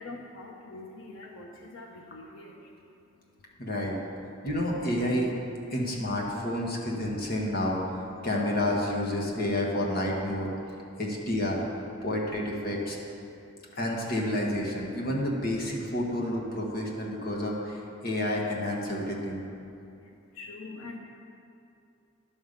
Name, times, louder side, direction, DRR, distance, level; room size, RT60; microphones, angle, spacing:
voice 1, 0.0-2.6 20.4-21.0, left 3 dB, 85° left, 0 dB, 0.9 m, -43 dB
voice 2, 3.6-4.0 4.4-5.3 5.7-10.5 11.0-11.6 12.0-13.0 13.7-19.4, left 1 dB, 45° left, -2 dB, 1.4 m, -29 dB
11.0 x 5.5 x 6.7 m, 2.6 s
head